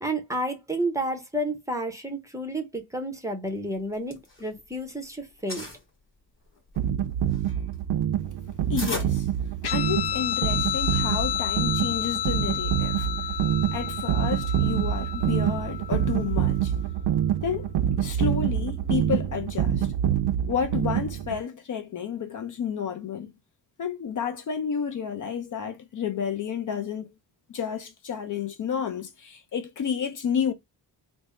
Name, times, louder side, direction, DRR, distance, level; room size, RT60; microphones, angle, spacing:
voice 1, 0.0-5.7, right 1 dB, 10° right, 0.6 m, -31 dB
sound 1, 3.7-4.9 5.2-5.8 6.4-10.0, left 2 dB, 30° left, 1.9 m, -38 dB
sound 2, 6.8-21.4, right 10 dB, 75° right, 0.5 m, -26 dB
voice 2, 8.7-9.3 9.7-13.3 13.7-16.7 17.4-17.7 18.0-19.9 20.5-23.3 23.8-27.1 27.5-30.5, left 7 dB, 45° left, 0.5 m, -31 dB
Guitar, 9.6-16.6, left 12 dB, 70° left, 0.9 m, -31 dB
3.5 x 2.0 x 4.1 m
wide cardioid pair, 170°, 42 cm